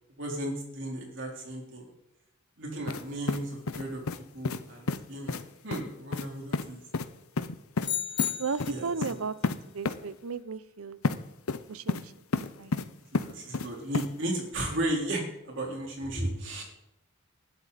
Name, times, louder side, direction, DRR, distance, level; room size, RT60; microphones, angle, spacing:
voice 1, 0.2-1.8 2.6-4.0 4.3-6.8 8.7-9.2 13.1-16.6, right 1 dB, 55° right, -1 dB, 3.9 m, -35 dB
sound 1, 2.9-3.0 3.3-4.2 4.4-4.6 4.9-5.0 5.3-5.4 5.7-5.8 6.1-6.3 6.5-6.7 6.9-7.1 7.4-7.9 8.2-8.3 8.6-8.7 9.0-9.1 9.4-9.6 9.8-10.0 11.0-11.2 11.5-12.0 12.3-12.8 13.1-13.7 13.9-14.1, left 3 dB, 80° left, 0.7 m, -30 dB
sound 2, 7.8-8.9, left 10 dB, 20° left, 1.1 m, -32 dB
voice 2, 8.4-9.3 9.7-11.0 11.7-12.0 12.4-12.7, right 5 dB, 80° right, 16 dB, 0.7 m, -35 dB
19.5 x 12.0 x 4.1 m, 0.84 s
head